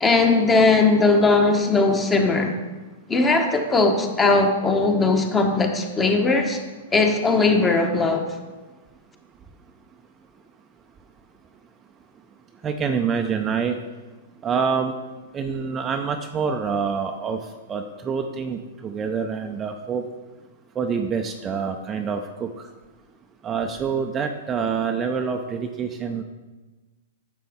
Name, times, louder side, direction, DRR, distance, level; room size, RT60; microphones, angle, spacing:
voice 1, 0.0-2.5 3.1-6.6 6.9-8.3, left 3 dB, 15° left, 4 dB, 1.2 m, -19 dB
voice 2, 12.1-13.8 14.3-14.9 15.3-20.1 20.7-22.7 23.4-26.2, right 6 dB, 25° right, 4 dB, 0.5 m, -27 dB
10.5 x 6.8 x 3.6 m, 1.2 s
hypercardioid pair, 115°, 0 cm